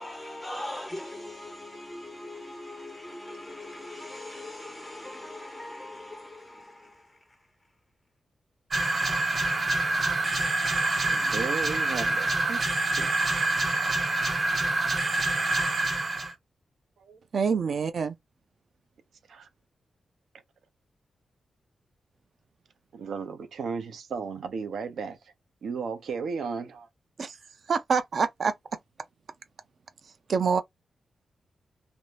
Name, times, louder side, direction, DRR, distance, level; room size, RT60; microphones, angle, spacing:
voice 1, 0.0-6.9, left 1 dB, 10° left, 0.4 m, -40 dB
sound 1, 8.7-16.3, right 2 dB, 35° right, 0.9 m, -26 dB
voice 2, 11.0-12.6 13.0-13.1 17.0-17.2 19.3-19.5 22.9-25.2 25.6-26.9, right 5 dB, 90° right, 0.6 m, -34 dB
voice 3, 17.3-18.2 27.2-27.4 27.7-28.5 30.3-30.6, right 5 dB, 55° right, 0.4 m, -26 dB
2.6 x 2.2 x 3.2 m
wide cardioid pair, 145°, 0 cm